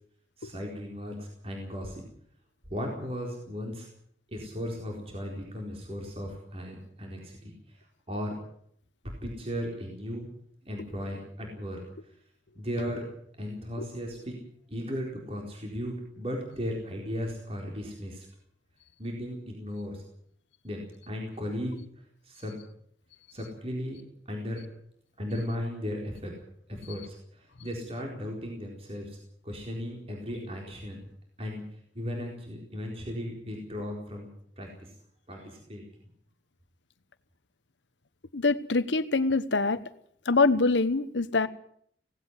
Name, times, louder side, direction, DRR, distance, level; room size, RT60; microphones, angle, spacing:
voice 1, 0.4-2.0 2.7-3.9 4.3-7.8 8.1-8.4 9.0-10.2 10.6-11.8 12.5-13.1 13.4-14.4 14.7-18.3 19.0-20.0 20.6-21.8 22.2-22.6 23.3-24.0 24.3-24.6 25.2-26.3 26.7-29.2 29.4-31.0 31.4-31.6 31.9-34.3 34.6-34.9 35.3-35.8, equal, 35° right, 0 dB, 4.3 m, -36 dB
voice 2, 38.3-39.8 40.3-41.5, left 3 dB, 90° left, 13 dB, 1.1 m, -24 dB
17.5 x 16.5 x 9.5 m, 0.65 s
head